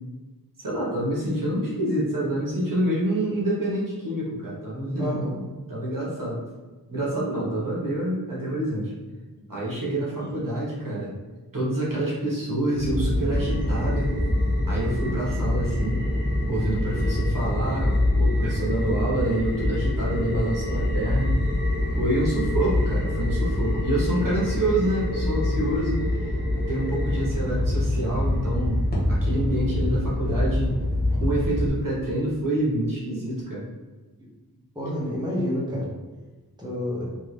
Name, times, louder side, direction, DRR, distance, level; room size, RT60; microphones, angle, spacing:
voice 1, 0.6-5.2 5.7-6.4 6.9-8.9 9.5-11.1 11.5-14.1 14.7-16.0 16.5-21.4 21.9-26.0 26.7-30.8 31.2-33.7, right 1 dB, 60° right, -6 dB, 1.4 m, -27 dB
voice 2, 5.0-5.3 34.7-35.9 36.6-37.1, left 1 dB, 10° right, -6 dB, 1.2 m, -28 dB
sound 1, 12.7-31.7, left 1 dB, 25° left, 1.2 m, -25 dB
3.6 x 2.9 x 3.2 m, 1.3 s
wide cardioid pair, 60°, 38 cm